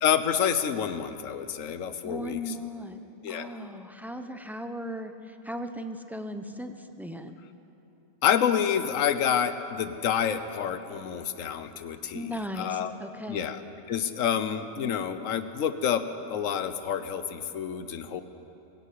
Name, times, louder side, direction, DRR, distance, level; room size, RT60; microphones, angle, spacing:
voice 1, 0.0-2.5 3.2-3.5 8.2-12.9 13.3-13.6 13.9-18.2, left 8 dB, 65° left, 11 dB, 1.3 m, -28 dB
voice 2, 2.0-3.0 3.3-7.4 12.1-13.4, left 1 dB, ahead, 6 dB, 0.6 m, -37 dB
23.0 x 16.0 x 8.5 m, 2.9 s
omnidirectional pair, 1.5 m